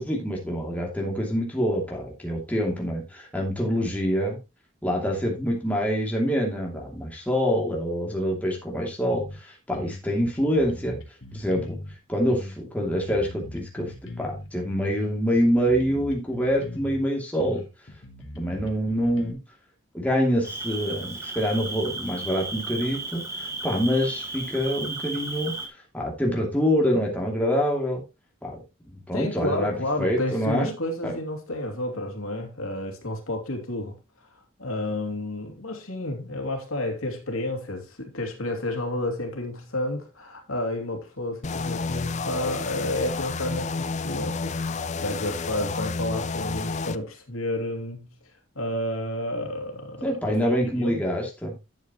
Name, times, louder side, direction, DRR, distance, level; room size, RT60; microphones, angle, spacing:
voice 1, 0.0-4.4 4.8-11.0 11.3-11.8 12.1-17.6 18.4-19.4 19.9-25.5 25.9-28.0 28.4-28.6 29.1-30.7 31.0-31.1 50.0-51.5, equal, 5° left, 2.7 m, -26 dB
sound 1, 9.1-9.4 9.7-11.9 12.3-14.5 14.8-17.0 17.4-19.3, left 1 dB, 60° left, 1.8 m, -40 dB
Cricket, 20.4-25.7, right 3 dB, 15° right, 1.8 m, -34 dB
voice 2, 29.1-34.3 34.6-48.1 48.5-51.0, left 1 dB, 90° left, 2.7 m, -31 dB
sound 2, 41.4-47.0, left 4 dB, 35° left, 0.5 m, -30 dB
11.5 x 7.4 x 3.0 m
head